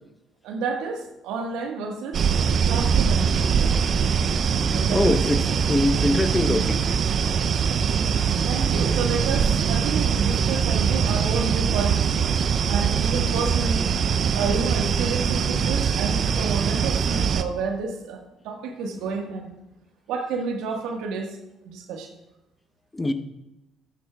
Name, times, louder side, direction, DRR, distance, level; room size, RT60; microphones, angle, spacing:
voice 1, 0.4-3.7 4.6-5.2 8.4-12.0 12.7-13.9 14.3-18.2 18.4-19.5 20.1-21.3 21.6-22.1, right 4 dB, 75° right, 3 dB, 1.6 m, -30 dB
sound 1, 2.1-17.4, right 7 dB, 55° right, 0.6 m, -22 dB
voice 2, 4.5-6.9 22.9-23.1, left 2 dB, 20° left, 8 dB, 1.0 m, -24 dB
13.5 x 12.0 x 2.4 m, 0.95 s
hypercardioid pair, 50°, 0 cm